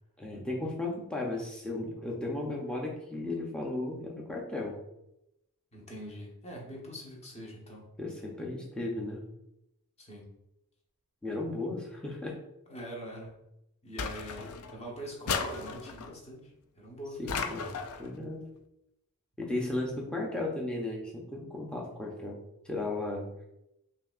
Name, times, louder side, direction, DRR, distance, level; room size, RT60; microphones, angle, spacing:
voice 1, 0.2-4.8 8.0-9.2 11.2-12.4 17.2-17.7 18.0-18.4 19.4-23.3, left 2 dB, 5° left, -2 dB, 0.7 m, -35 dB
voice 2, 5.7-7.9 10.0-10.3 12.7-13.3 13.8-17.4, equal, 30° left, -2 dB, 1.1 m, -43 dB
sound 1, 14.0-14.8 15.3-16.1 17.3-18.1, left 5 dB, 80° left, 0.4 m, -35 dB
5.5 x 2.8 x 2.5 m, 0.84 s
head